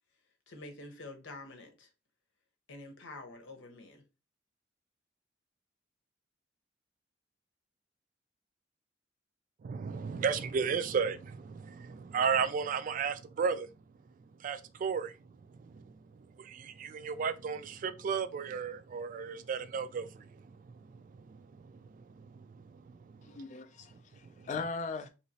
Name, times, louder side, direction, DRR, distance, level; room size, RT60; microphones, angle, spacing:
voice 1, 0.5-1.9 2.7-4.0, left 2 dB, 85° left, 0.9 m, -47 dB
voice 2, 9.6-13.7 14.4-15.2 15.5-15.9 16.4-23.4 23.9-24.0 24.4-24.5, right 6 dB, 45° right, 0.3 m, -35 dB
voice 3, 23.2-25.1, left 4 dB, 40° left, 0.3 m, -39 dB
3.0 x 2.9 x 2.8 m
head